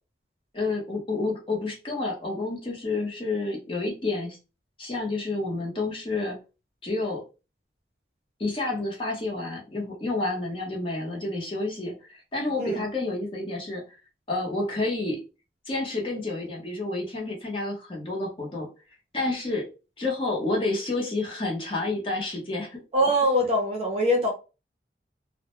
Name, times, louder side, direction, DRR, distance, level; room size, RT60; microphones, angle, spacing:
voice 1, 0.5-4.4 4.8-6.4 6.8-7.2 8.4-13.8 14.3-15.2 15.7-18.7 19.1-19.7 20.0-22.8, left 2 dB, 30° left, 0.7 m, -29 dB
voice 2, 22.9-24.3, equal, 35° right, 0.6 m, -23 dB
2.1 x 2.1 x 2.9 m
head